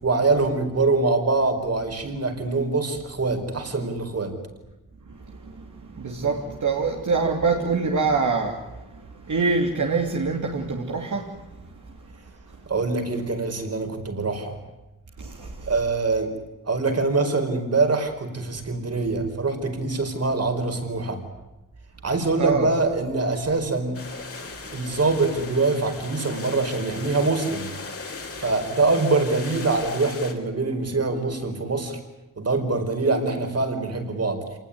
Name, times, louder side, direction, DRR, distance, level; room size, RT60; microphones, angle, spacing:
voice 1, 0.0-4.3 12.7-14.5 15.7-16.3 16.6-21.2 22.0-24.0 24.7-27.7 28.4-32.0 32.4-34.4, right 3 dB, 50° right, 4.9 m, -24 dB
voice 2, 5.0-12.6 15.2-15.7 22.4-22.7 28.3-28.4, right 4 dB, 65° right, 3.0 m, -26 dB
sound 1, 23.9-30.3, left 4 dB, 45° left, 3.9 m, -37 dB
28.0 x 19.5 x 9.6 m
wide cardioid pair, 125°, 31 cm